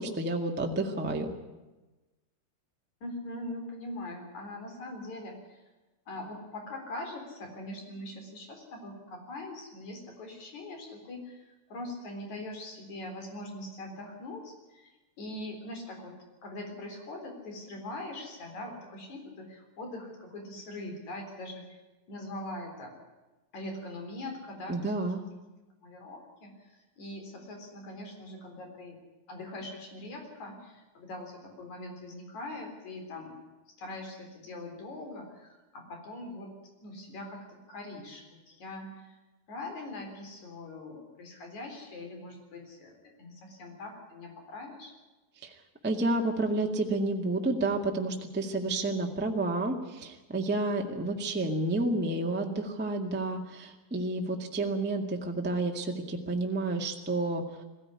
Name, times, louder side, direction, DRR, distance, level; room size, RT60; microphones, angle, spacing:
voice 1, 0.0-1.3 24.7-25.2 45.4-45.5 45.8-57.6, right 2 dB, 10° right, 2 dB, 0.4 m, -30 dB
voice 2, 3.0-5.6 6.1-16.1 16.4-21.8 22.1-22.9 23.5-24.9 25.8-26.5 27.0-29.0 29.3-33.4 33.8-39.2 39.5-44.9, left 1 dB, 50° left, 3 dB, 5.2 m, -42 dB
21.5 x 15.5 x 9.7 m, 1.1 s
omnidirectional pair, 4.2 m